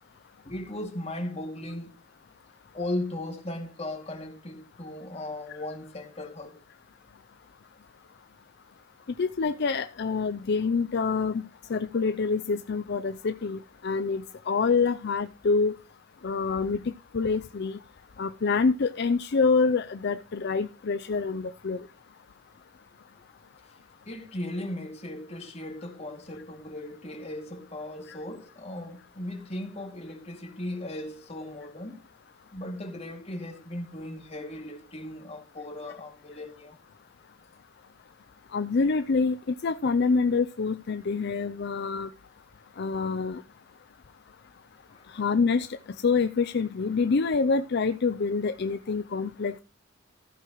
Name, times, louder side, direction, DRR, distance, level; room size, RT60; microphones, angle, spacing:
voice 1, 0.4-1.9 2.7-6.6 24.1-32.0 32.5-36.8 44.9-45.2, left 1 dB, 30° left, 2.3 m, -37 dB
voice 2, 9.2-11.4 11.7-15.7 16.2-16.8 17.1-17.8 18.2-21.8 38.5-39.4 39.6-42.1 42.8-43.4 45.1-45.8 46.0-49.6, left 4 dB, 55° left, 0.5 m, -26 dB
15.0 x 8.5 x 3.1 m
head